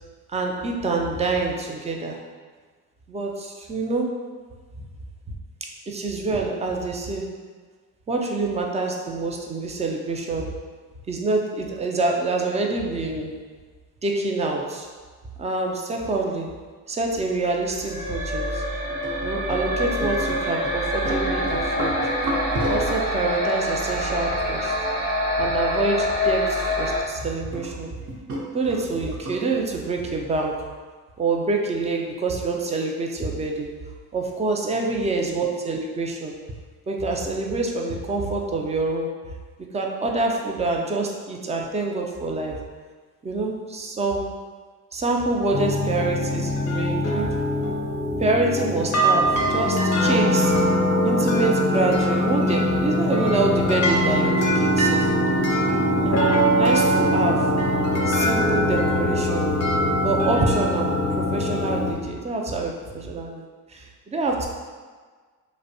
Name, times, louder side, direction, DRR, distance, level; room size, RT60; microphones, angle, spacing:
voice 1, 0.3-2.2 3.1-4.1 5.9-7.3 8.1-10.5 11.1-13.3 14.0-14.9 15.4-16.5 16.9-18.6 19.2-22.0 22.7-24.7 25.4-27.9 28.5-30.6 31.2-33.7 34.1-36.3 36.9-39.1 39.7-42.5 43.2-44.2 44.9-47.3 48.2-50.5 51.0-55.1 56.0-56.2 56.6-57.5 58.1-59.5 60.0-64.5, right 3 dB, 20° right, 1 dB, 0.3 m, -26 dB
sound 1, 17.5-27.0, left 1 dB, 80° right, 0.9 m, -26 dB
sound 2, 18.9-20.7 21.1-23.1 23.8-24.2 24.8-24.9 25.6-26.0 26.7-26.8 27.5-27.7 28.0-29.6, right 1 dB, 45° right, 0.7 m, -30 dB
sound 3, 45.5-61.9, equal, 45° left, 0.6 m, -22 dB
2.5 x 2.1 x 2.6 m, 1.5 s
supercardioid pair, 65°, 38 cm